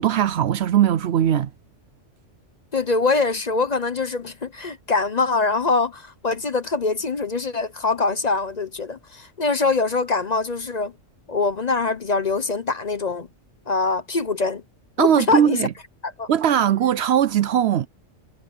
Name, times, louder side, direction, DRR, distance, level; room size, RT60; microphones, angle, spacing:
voice 1, 0.0-1.5 15.0-15.7 16.3-17.9, right 10 dB, 65° right, 0.8 m, -19 dB
voice 2, 2.7-10.9 11.3-13.3 13.7-14.6 15.0-15.6 16.0-16.3, left 3 dB, 35° left, 0.9 m, -23 dB
omnidirectional pair, 1.3 m